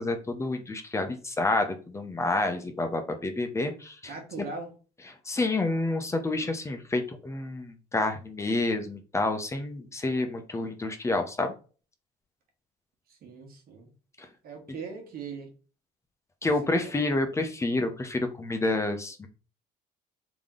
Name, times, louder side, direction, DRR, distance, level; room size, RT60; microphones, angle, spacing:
voice 1, 0.0-4.0 5.3-11.5 16.4-19.3, left 2 dB, 15° left, 6 dB, 0.7 m, -29 dB
voice 2, 4.1-4.7 13.1-13.9 14.4-15.5 16.4-16.5 16.8-17.1, right 4 dB, 60° right, 2 dB, 1.5 m, -40 dB
3.6 x 3.0 x 3.7 m, 0.36 s
cardioid pair, 110°, 17 cm